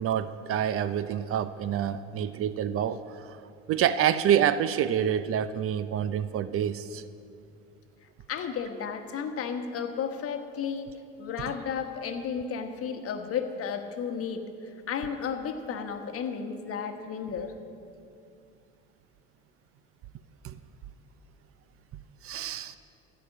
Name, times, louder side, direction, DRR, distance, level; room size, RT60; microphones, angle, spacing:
voice 1, 0.0-3.4 3.7-7.0 20.4-20.6 22.2-22.8, right 9 dB, 45° right, 14 dB, 0.5 m, -27 dB
voice 2, 8.3-10.9 11.2-14.4 14.9-17.5, left 6 dB, 50° left, 6 dB, 1.2 m, -33 dB
14.5 x 5.2 x 8.4 m, 2.4 s
supercardioid pair, 90°, 30 cm